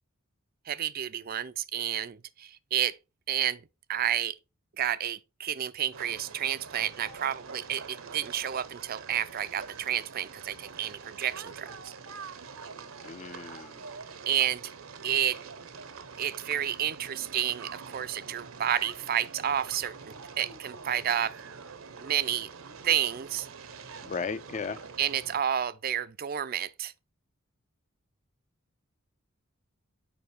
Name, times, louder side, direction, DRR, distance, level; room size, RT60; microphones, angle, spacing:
voice 1, 0.7-3.0 3.3-3.6 3.9-4.4 4.8-11.9 14.3-14.7 15.0-15.4 16.2-21.3 22.0-22.5 22.8-23.5 25.0-26.9, right 10 dB, 45° right, 0.4 m, -30 dB
sound 1, 5.9-25.4, right 5 dB, 70° right, 0.8 m, -45 dB
voice 2, 13.0-13.8 24.1-24.8, left 5 dB, 35° left, 0.4 m, -35 dB
7.0 x 5.3 x 3.2 m
head